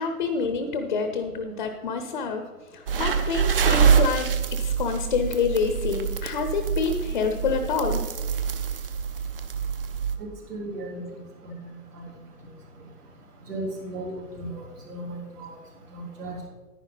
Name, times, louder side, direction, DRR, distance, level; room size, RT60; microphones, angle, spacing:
voice 1, 0.0-2.4 2.7-8.0, left 5 dB, 30° left, 7 dB, 0.7 m, -27 dB
sound 1, 2.9-10.2, right 7 dB, 35° right, 0.7 m, -25 dB
voice 2, 10.2-11.0 11.4-12.0 13.5-15.5 15.9-16.5, right 1 dB, 80° right, -6 dB, 3.7 m, -36 dB
10.5 x 10.0 x 3.9 m, 1.2 s
hypercardioid pair, 155°, 46 cm